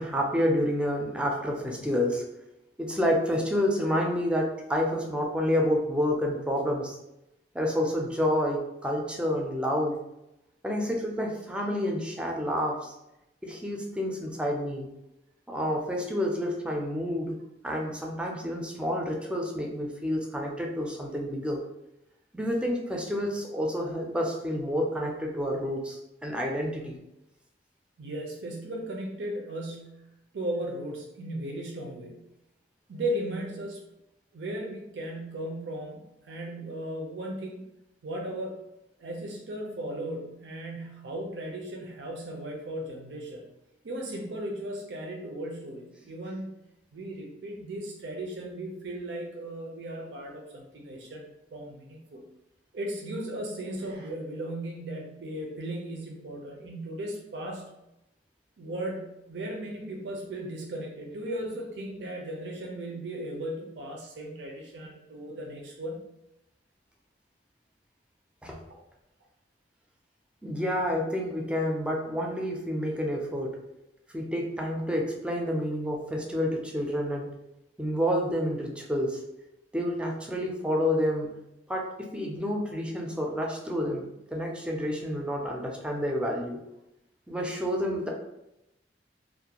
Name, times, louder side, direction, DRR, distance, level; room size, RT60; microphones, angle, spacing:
voice 1, 0.0-2.2 2.8-7.0 7.5-10.0 10.6-12.9 13.4-14.9 15.5-21.6 22.3-27.0 68.4-68.6 70.4-73.6 74.1-77.3 77.8-79.2 79.7-81.3 81.7-86.6 87.3-88.1, equal, 5° right, 0 dB, 0.4 m, -29 dB
voice 2, 28.0-30.1 30.3-32.2 32.9-33.8 34.3-37.6 38.0-38.6 39.0-43.5 43.8-46.5 46.9-52.2 52.7-57.7 58.6-66.0 68.7-68.8, right 1 dB, 75° right, 0 dB, 0.5 m, -36 dB
2.4 x 2.1 x 2.8 m, 0.88 s
head